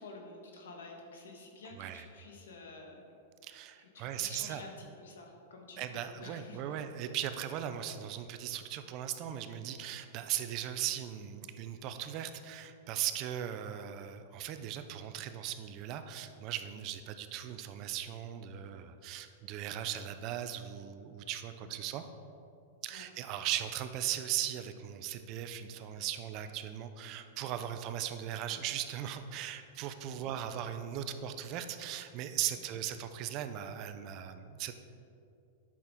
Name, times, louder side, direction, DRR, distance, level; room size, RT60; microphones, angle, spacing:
voice 1, 0.0-3.0 3.8-6.6 22.9-23.1 30.1-30.3 32.7-32.8, left 3 dB, 85° left, 1 dB, 1.4 m, -50 dB
voice 2, 1.7-2.1 3.4-4.6 5.8-22.0 22.8-34.7, right 11 dB, 40° right, 9 dB, 0.5 m, -38 dB
8.4 x 5.9 x 3.7 m, 2.6 s
hypercardioid pair, 130°, 0 cm